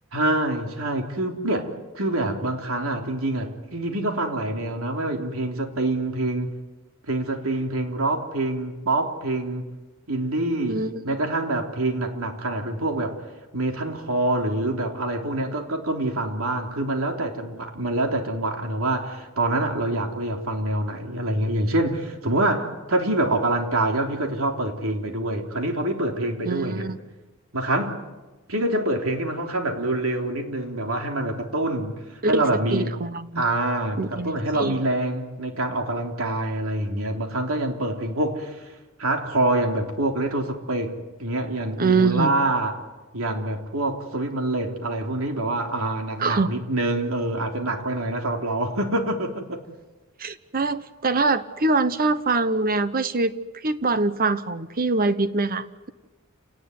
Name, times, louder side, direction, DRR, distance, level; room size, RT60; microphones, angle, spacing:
voice 1, 0.1-6.6 7.1-9.7 10.1-13.2 13.5-26.9 27.5-28.0 28.5-33.0 33.4-38.7 39.0-42.8 43.1-49.6, right 1 dB, 70° right, 3.4 m, -26 dB
voice 2, 10.7-11.1 26.4-27.0 32.2-33.4 34.0-34.8 41.8-42.3 46.2-46.5 50.2-53.3 53.6-55.9, right 3 dB, 45° right, 1.0 m, -24 dB
29.0 x 18.5 x 9.6 m
head